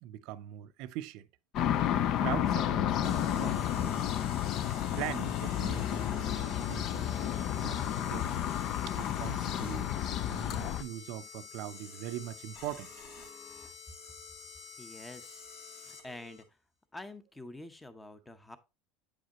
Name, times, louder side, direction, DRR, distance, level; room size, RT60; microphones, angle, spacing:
voice 1, 0.0-1.2 2.2-4.1 5.0-8.4 8.9-9.9 10.3-12.9, right 13 dB, 60° right, 0.5 m, -41 dB
sound 1, 1.5-10.8, left 10 dB, 50° left, 0.5 m, -31 dB
Bass guitar, 2.6-6.2, left 11 dB, 85° left, 0.8 m, -46 dB
sound 2, 3.0-16.4, left 5 dB, 65° left, 1.9 m, -48 dB
voice 2, 14.8-15.4 15.7-16.4 16.9-18.6, left 2 dB, 10° left, 0.8 m, -47 dB
8.6 x 4.9 x 2.9 m
supercardioid pair, 125°, 0 cm